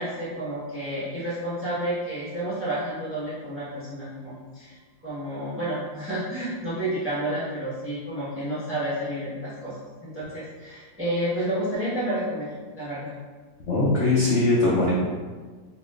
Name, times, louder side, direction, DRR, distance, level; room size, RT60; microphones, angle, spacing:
voice 1, 0.0-4.8 5.0-9.7 10.0-13.1, right 1 dB, 10° right, -10 dB, 0.7 m, -30 dB
voice 2, 13.7-14.9, left 2 dB, 65° left, -7 dB, 0.7 m, -21 dB
4.3 x 2.8 x 2.4 m, 1.4 s
omnidirectional pair, 2.0 m